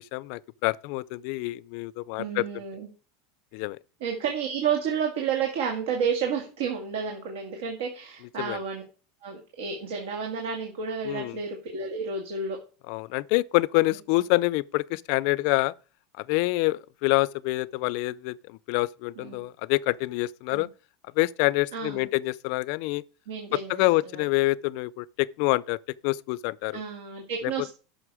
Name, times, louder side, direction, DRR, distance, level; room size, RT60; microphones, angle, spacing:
voice 1, 0.0-2.4 3.5-3.8 8.4-8.6 11.1-11.4 12.9-15.7 16.2-20.7 21.2-23.0 23.7-25.8 26.0-26.8, left 21 dB, 50° left, 0.4 m, -26 dB
voice 2, 2.2-2.9 4.0-8.8 9.2-12.6 19.2-19.4 20.5-20.7 21.7-22.1 23.3-23.8 24.1-24.2 26.7-27.7, right 6 dB, 85° right, 2.1 m, -31 dB
11.0 x 6.3 x 4.8 m
supercardioid pair, 165°, 0 cm